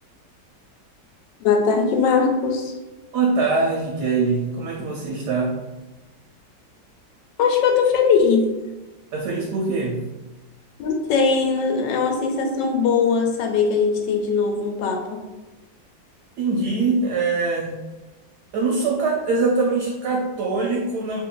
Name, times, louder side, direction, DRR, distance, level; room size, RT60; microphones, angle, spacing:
voice 1, 1.4-2.7 7.4-8.5 10.8-15.2, left 5 dB, 80° left, 3 dB, 1.2 m, -20 dB
voice 2, 3.1-5.6 9.1-10.1 16.4-17.8 18.5-21.2, right 3 dB, 70° right, -1 dB, 1.0 m, -23 dB
2.9 x 2.5 x 3.7 m, 1.1 s
omnidirectional pair, 2.0 m